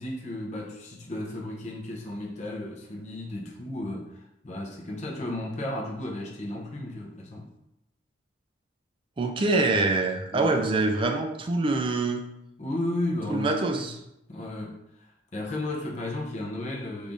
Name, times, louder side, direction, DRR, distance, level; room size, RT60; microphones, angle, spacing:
voice 1, 0.0-7.5 10.3-10.5 12.6-13.9 14.3-17.1, left 1 dB, 35° left, -3 dB, 0.6 m, -34 dB
voice 2, 9.2-12.2 13.3-13.9, right 3 dB, 25° right, 4 dB, 0.3 m, -25 dB
3.5 x 3.2 x 2.6 m, 0.87 s
head